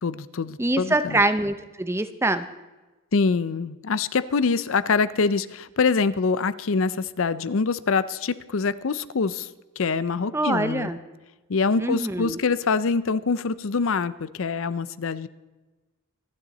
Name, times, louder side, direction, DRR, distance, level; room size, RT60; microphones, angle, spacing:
voice 1, 0.0-1.2 3.1-9.5 9.8-10.9 11.5-15.3, left 4 dB, 65° left, 16 dB, 0.5 m, -25 dB
voice 2, 0.6-2.5 10.3-11.0 11.8-12.4, right 1 dB, 10° right, 10 dB, 0.6 m, -24 dB
26.5 x 9.9 x 4.1 m, 1.2 s
head